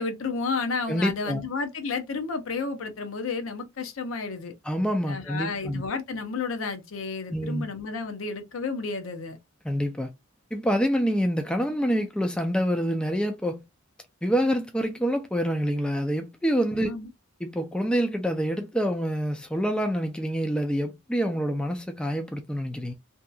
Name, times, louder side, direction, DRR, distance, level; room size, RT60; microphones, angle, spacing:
voice 1, 0.0-4.5 5.1-9.4 16.8-17.1, left 4 dB, 75° left, 0.6 m, -31 dB
voice 2, 0.9-1.4 4.6-5.8 7.3-7.6 9.6-10.1 10.5-13.6 14.2-16.9 17.4-22.9, equal, 5° left, 0.3 m, -26 dB
2.7 x 2.3 x 2.2 m
head